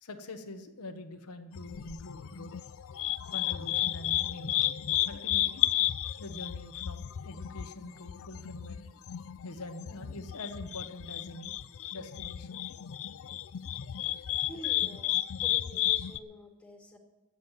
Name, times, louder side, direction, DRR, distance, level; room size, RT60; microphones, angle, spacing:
voice 1, 0.0-2.5 3.3-4.6 5.1-5.6 6.2-8.9 9.4-11.5 11.9-12.6, left 2 dB, 85° left, 6 dB, 1.2 m, -44 dB
sound 1, 1.5-16.2, left 13 dB, 65° left, 0.4 m, -33 dB
voice 2, 14.4-17.0, equal, 5° left, 2 dB, 2.0 m, -48 dB
13.5 x 7.6 x 9.2 m, 1.1 s
head